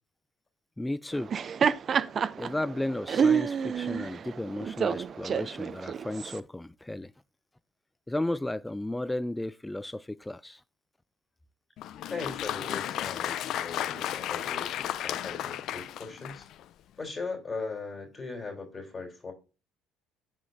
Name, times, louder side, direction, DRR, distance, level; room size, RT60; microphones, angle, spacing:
voice 1, 0.8-1.3 2.4-7.1 8.1-10.6, left 1 dB, 10° left, 0.4 m, -34 dB
Laughter, 1.1-6.4, right 7 dB, 45° right, 0.5 m, -28 dB
Applause, 11.8-16.6, left 12 dB, 60° left, 0.5 m, -34 dB
voice 2, 12.1-16.5 16.9-19.3, left 4 dB, 30° left, 3.4 m, -39 dB
8.4 x 7.5 x 2.6 m
hypercardioid pair, 65°, 0 cm